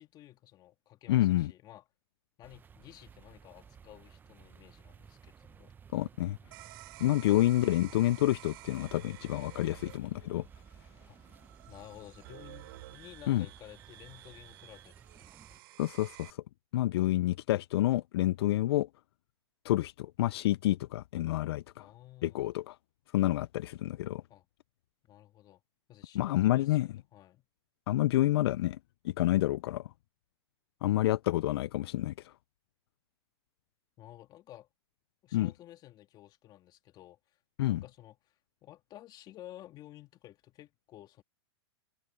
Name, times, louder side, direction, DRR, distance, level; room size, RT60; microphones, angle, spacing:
voice 1, 0.0-1.8 2.4-5.7 7.3-7.5 11.0-11.2 11.7-15.6 16.9-17.1 18.4-18.5 21.8-22.4 24.3-24.5 25.0-25.6 25.9-27.5 34.0-34.7 35.2-37.4 37.7-41.2, left 14 dB, 30° left, 2.4 m, -53 dB
voice 2, 1.1-1.5 5.9-6.4 7.0-10.4 13.3-13.5 15.8-16.4 16.7-18.9 19.6-21.9 22.2-22.8 23.1-24.2 26.1-26.9 27.9-28.8 29.0-29.9 30.8-32.3 35.3-35.5 37.6-37.8, left 15 dB, 65° left, 0.4 m, -28 dB
sound 1, 2.4-15.6, right 7 dB, 15° right, 0.7 m, -56 dB
sound 2, 6.5-16.3, right 19 dB, 55° right, 6.7 m, -52 dB
hypercardioid pair, 135°, 14 cm